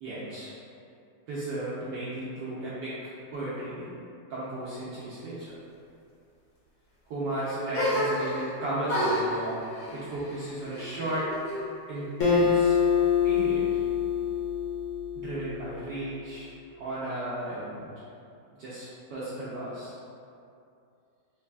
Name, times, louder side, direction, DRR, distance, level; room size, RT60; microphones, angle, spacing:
voice 1, 0.0-0.5 1.3-3.9 4.3-5.5 7.1-9.6 9.9-11.3 11.9-12.8 13.2-13.8 15.1-17.9 18.6-19.9, right 1 dB, 75° right, -9 dB, 1.0 m, -34 dB
sound 1, 7.7-8.5 8.9-11.6 11.9-12.8, equal, 75° left, 1.8 m, -31 dB
Acoustic guitar, 12.2-15.7, left 7 dB, 90° left, 1.7 m, -25 dB
4.2 x 3.2 x 2.2 m, 2.6 s
omnidirectional pair, 2.3 m